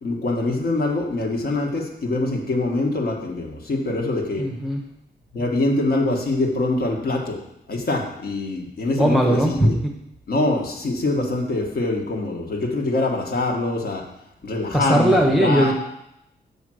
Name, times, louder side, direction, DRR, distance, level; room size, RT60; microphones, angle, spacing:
voice 1, 0.0-4.4 5.3-7.4 7.7-9.8 10.3-14.0 14.4-15.7, left 2 dB, 55° left, 0 dB, 1.5 m, -24 dB
voice 2, 4.4-4.8 9.0-9.9 14.7-15.7, right 1 dB, ahead, 1 dB, 0.8 m, -19 dB
7.2 x 5.0 x 6.3 m, 0.80 s
wide cardioid pair, 175°, 19 cm